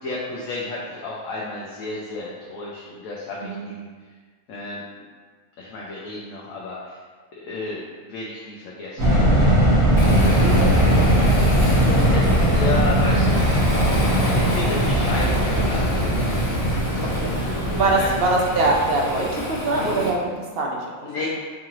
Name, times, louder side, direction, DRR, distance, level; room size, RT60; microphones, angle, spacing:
voice 1, 0.0-3.9 4.5-4.8 5.6-7.0 7.4-9.1 9.8-10.6 12.0-13.4 14.4-16.0 18.0-18.1 21.0-21.3, left 3 dB, 85° left, -5 dB, 1.0 m, -32 dB
sound 1, 9.0-19.2, right 1 dB, 90° right, 2.1 m, -19 dB
Waves surf, 10.0-20.1, left 1 dB, 55° left, 1.1 m, -29 dB
voice 2, 10.0-10.8 11.8-12.5 17.1-17.3 17.7-21.1, right 2 dB, 60° right, -1 dB, 0.7 m, -24 dB
4.7 x 2.9 x 2.5 m, 1.5 s
omnidirectional pair, 1.4 m